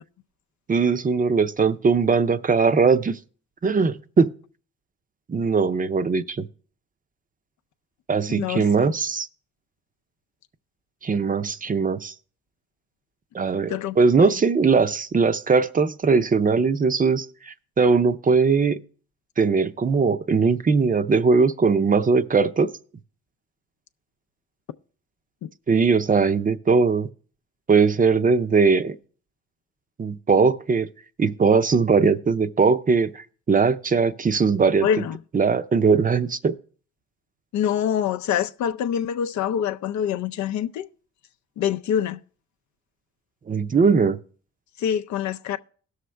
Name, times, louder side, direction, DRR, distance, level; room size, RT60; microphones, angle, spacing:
voice 1, 0.7-3.2 3.6-4.3 5.3-6.5 8.1-9.3 11.0-12.1 13.3-18.8 19.4-22.7 25.7-27.1 27.7-29.0 30.0-30.9 31.2-34.9 35.3-36.5 43.5-44.2, right 5 dB, 30° right, 0.6 m, -20 dB
voice 2, 8.3-8.9 13.7-14.4 25.4-25.5 34.8-35.2 37.5-40.9 41.6-42.2 44.8-45.6, left 9 dB, 65° left, 0.5 m, -25 dB
17.0 x 6.4 x 3.4 m
cardioid pair, 90°, 30 cm